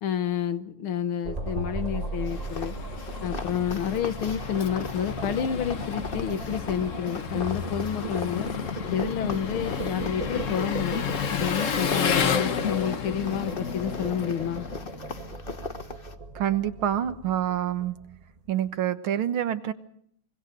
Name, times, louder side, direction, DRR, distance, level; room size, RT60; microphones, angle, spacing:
voice 1, 0.0-2.8 3.2-8.5 8.9-11.0 11.3-14.7, left 9 dB, 70° left, 12 dB, 2.0 m, -29 dB
sound 1, 1.2-18.5, right 2 dB, 20° right, 1.7 m, -37 dB
Engine, 1.8-15.3, left 7 dB, 45° left, 1.1 m, -32 dB
sound 2, 2.3-16.2, left 4 dB, 30° left, 1.3 m, -39 dB
voice 2, 16.3-18.0 18.5-19.7, right 10 dB, 70° right, 11 dB, 2.0 m, -27 dB
25.0 x 24.0 x 5.2 m, 0.66 s
omnidirectional pair, 2.4 m